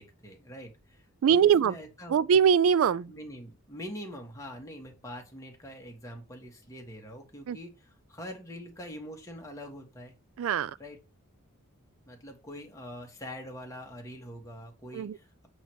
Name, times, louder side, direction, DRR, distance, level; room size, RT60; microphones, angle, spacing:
voice 1, 0.0-2.2 3.1-10.1 10.8-11.0 12.1-15.5, equal, 15° left, 1.5 m, -44 dB
voice 2, 1.2-1.7 2.1-3.1 7.5-7.6 10.4-10.7 14.9-15.2, right 7 dB, 65° right, 0.3 m, -22 dB
7.7 x 3.3 x 6.2 m
head